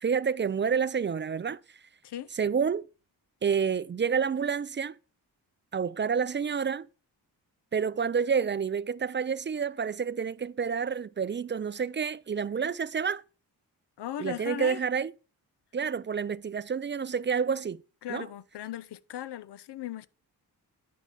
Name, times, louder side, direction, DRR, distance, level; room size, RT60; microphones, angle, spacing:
voice 1, 0.0-1.6 2.4-2.9 3.4-5.0 5.7-6.9 7.7-13.2 14.2-15.1 15.7-17.8 18.1-18.3, right 6 dB, 30° right, 0.4 m, -29 dB
voice 2, 2.0-2.4 14.0-14.8 18.0-20.1, left 11 dB, 75° left, 0.7 m, -38 dB
11.0 x 4.7 x 5.5 m
cardioid pair, 55°, 41 cm